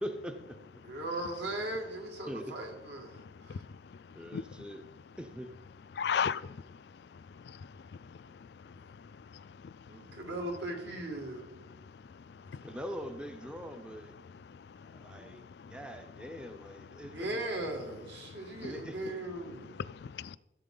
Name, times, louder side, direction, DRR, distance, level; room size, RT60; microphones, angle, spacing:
voice 1, 0.0-0.6 2.3-2.5 4.1-4.8 5.2-5.5 12.6-14.1 14.8-15.4 15.7-17.4 17.8-17.9 18.6-19.2, equal, 5° right, 0.6 m, -42 dB
voice 2, 0.8-3.6 9.9-11.5 15.2-15.3 17.1-19.8, right 1 dB, 70° right, 2.3 m, -38 dB
voice 3, 5.9-6.6 7.4-7.7 12.5-12.6 15.3-15.7 18.6-18.7 19.9-20.4, left 7 dB, 60° left, 0.3 m, -34 dB
14.5 x 7.5 x 3.9 m
head